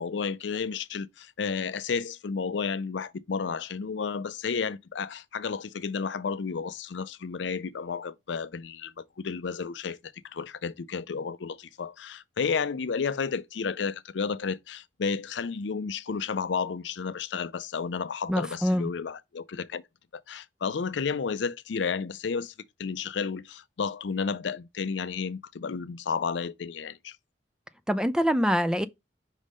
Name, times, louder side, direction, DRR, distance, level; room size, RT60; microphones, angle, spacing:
voice 1, 0.0-10.0 10.2-19.8 20.1-22.5 22.8-27.2, left 5 dB, 75° left, 0.5 m, -32 dB
voice 2, 18.3-18.9 27.9-28.9, equal, 5° right, 0.4 m, -24 dB
5.4 x 3.6 x 5.0 m
head